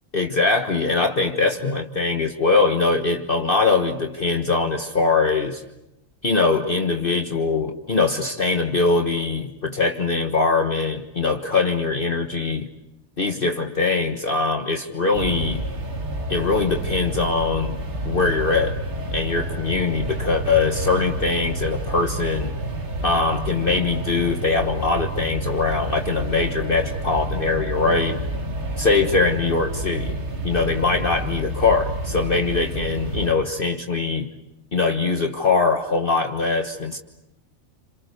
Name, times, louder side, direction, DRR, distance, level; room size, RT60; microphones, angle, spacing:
voice 1, 0.1-5.6 6.2-12.7 13.2-15.6 16.3-17.8 18.0-18.8 19.1-22.5 23.0-28.2 28.8-30.2 30.4-34.3 34.7-37.0, left 4 dB, 45° left, 4 dB, 1.5 m, -22 dB
sound 1, 15.1-33.3, right 1 dB, 55° right, 2.5 m, -29 dB
29.5 x 28.0 x 6.7 m, 0.90 s
omnidirectional pair, 1.4 m